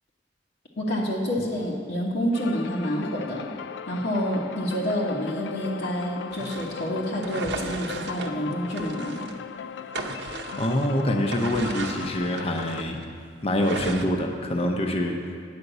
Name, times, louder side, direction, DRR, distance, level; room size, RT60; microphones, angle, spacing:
voice 1, 0.8-3.5 3.9-9.2, equal, 70° left, -3 dB, 1.2 m, -28 dB
sound 1, 2.3-12.8, left 7 dB, 85° left, 0.4 m, -38 dB
sound 2, 6.3-9.4 9.8-13.1 13.6-14.0, right 3 dB, 70° right, 0.7 m, -36 dB
voice 2, 10.5-13.0 13.4-15.2, left 1 dB, 35° left, 3 dB, 0.7 m, -25 dB
9.8 x 5.2 x 8.0 m, 2.2 s
head